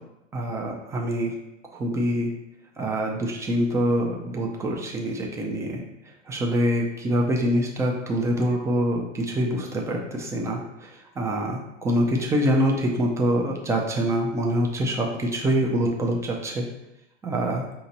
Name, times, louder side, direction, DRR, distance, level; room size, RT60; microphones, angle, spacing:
voice 1, 0.3-1.3 1.7-2.3 2.8-5.8 6.3-10.9 11.2-16.6 17.2-17.6, equal, 10° right, -1 dB, 0.4 m, -25 dB
5.6 x 2.8 x 2.8 m, 0.88 s
figure-of-eight pair, 95°, 38 cm